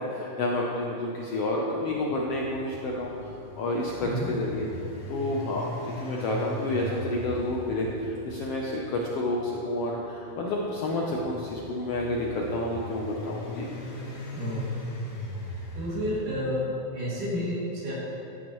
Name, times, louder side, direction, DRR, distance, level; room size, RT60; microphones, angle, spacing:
voice 1, 0.0-4.7 5.1-13.7, left 1 dB, 75° left, -3 dB, 1.4 m, -30 dB
sound 1, 1.8-16.2, left 1 dB, 50° left, 1.2 m, -40 dB
voice 2, 14.3-14.7 15.8-16.7 16.9-17.9, equal, 80° right, -7 dB, 4.1 m, -30 dB
14.5 x 8.2 x 3.1 m, 2.9 s
omnidirectional pair, 3.6 m